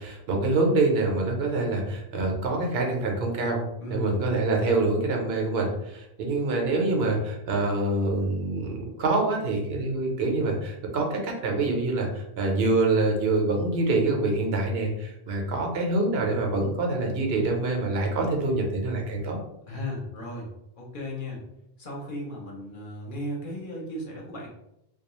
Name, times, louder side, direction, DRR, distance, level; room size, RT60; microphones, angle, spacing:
voice 1, 0.0-3.6 3.9-19.4, right 2 dB, 80° right, 1 dB, 0.9 m, -25 dB
voice 2, 3.8-4.2 19.7-20.5 20.8-21.4 21.8-24.5, left 1 dB, 55° left, -2 dB, 0.8 m, -35 dB
2.3 x 2.2 x 2.9 m, 0.84 s
omnidirectional pair, 1.1 m